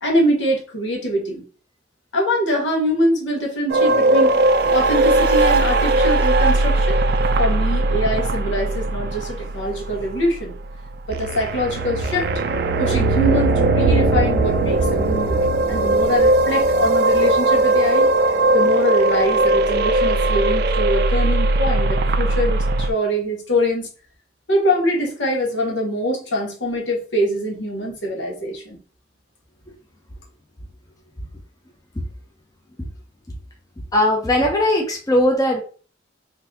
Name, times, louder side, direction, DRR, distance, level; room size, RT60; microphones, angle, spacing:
voice 1, 0.0-1.4 2.1-7.1 7.4-10.5 11.1-12.3 12.8-15.4 15.7-18.1 18.5-23.9 24.5-28.8, equal, 75° left, 0 dB, 1.2 m, -23 dB
sound 1, 3.7-22.9, right 2 dB, 55° right, 0.4 m, -19 dB
voice 2, 33.9-35.6, left 1 dB, 20° left, 1 dB, 0.6 m, -18 dB
3.9 x 2.7 x 2.7 m, 0.38 s
head